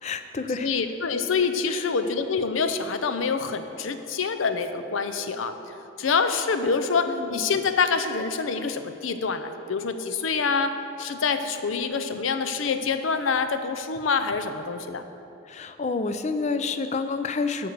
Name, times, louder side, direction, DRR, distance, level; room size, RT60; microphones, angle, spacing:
voice 1, 0.0-0.8 1.7-1.9 7.1-7.5 15.5-17.7, left 4 dB, 35° left, 10 dB, 0.4 m, -29 dB
voice 2, 0.6-5.6 6.0-15.0, left 5 dB, 85° left, 9 dB, 0.6 m, -26 dB
8.6 x 6.7 x 6.7 m, 2.9 s
head